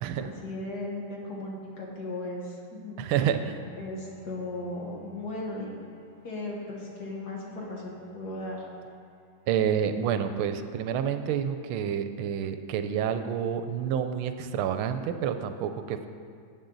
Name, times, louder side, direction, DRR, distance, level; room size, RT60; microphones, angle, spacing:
voice 1, 0.2-3.3 3.8-5.9 6.2-8.7, left 2 dB, 50° left, -2 dB, 1.9 m, -37 dB
voice 2, 3.0-3.6 9.5-16.1, right 8 dB, 80° right, 9 dB, 1.4 m, -28 dB
Bowed string instrument, 3.2-10.4, right 2 dB, 85° left, 2.4 m, -54 dB
12.0 x 8.3 x 3.9 m, 2.2 s
omnidirectional pair, 2.3 m